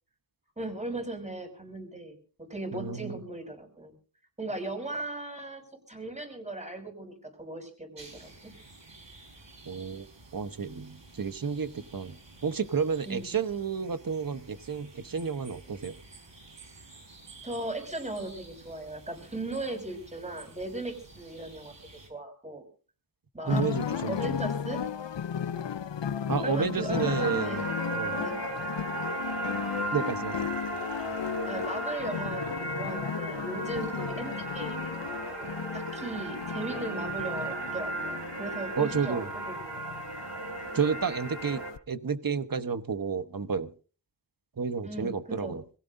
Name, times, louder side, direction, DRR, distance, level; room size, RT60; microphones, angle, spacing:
voice 1, 0.6-3.9 4.4-8.5 13.1-13.3 17.4-21.7 22.1-22.6 23.3-23.6 24.1-24.8 25.5-25.8 26.4-27.7 28.1-28.4 31.4-40.1 44.8-45.6, right 2 dB, 15° right, 5 dB, 6.2 m, -38 dB
voice 2, 2.7-3.2 9.7-10.1 10.3-16.0 23.5-24.3 26.3-27.6 27.9-28.2 29.9-30.5 38.8-39.3 40.7-41.6 41.9-43.7 44.6-45.6, right 6 dB, 50° right, 11 dB, 1.1 m, -31 dB
sound 1, 8.0-22.1, right 2 dB, 85° right, 4.7 m, -52 dB
sound 2, 23.4-41.8, left 8 dB, 80° left, 0.7 m, -35 dB
sound 3, 27.0-41.7, right 2 dB, 70° right, 3.8 m, -36 dB
26.5 x 16.5 x 2.6 m, 0.38 s
wide cardioid pair, 65°, 43 cm